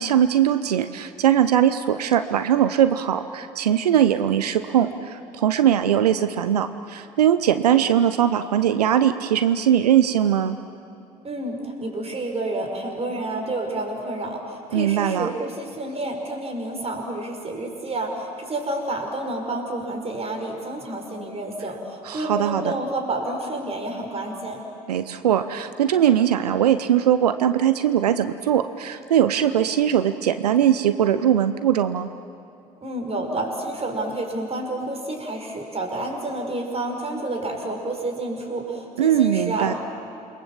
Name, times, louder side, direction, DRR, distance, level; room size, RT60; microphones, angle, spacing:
voice 1, 0.0-10.6 14.7-15.3 22.0-22.8 24.9-32.1 39.0-39.7, right 10 dB, 85° right, 11 dB, 0.7 m, -20 dB
voice 2, 11.2-24.6 32.8-39.8, right 2 dB, 30° right, 2 dB, 5.7 m, -29 dB
28.5 x 22.0 x 7.5 m, 2.6 s
hypercardioid pair, 55°, 20 cm